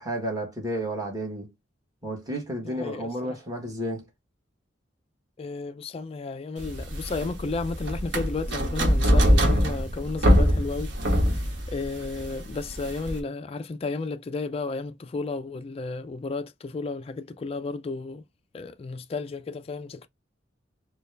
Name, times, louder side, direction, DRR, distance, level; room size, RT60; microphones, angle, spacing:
voice 1, 0.0-1.5 2.0-4.0, right 1 dB, 20° right, 1.4 m, -32 dB
voice 2, 2.6-3.4 5.4-10.9 11.3-11.4 11.7-18.2 18.5-20.1, left 3 dB, 30° left, 0.3 m, -33 dB
sound 1, 6.6-13.2, equal, 65° right, 1.2 m, -23 dB
4.3 x 2.3 x 3.2 m
head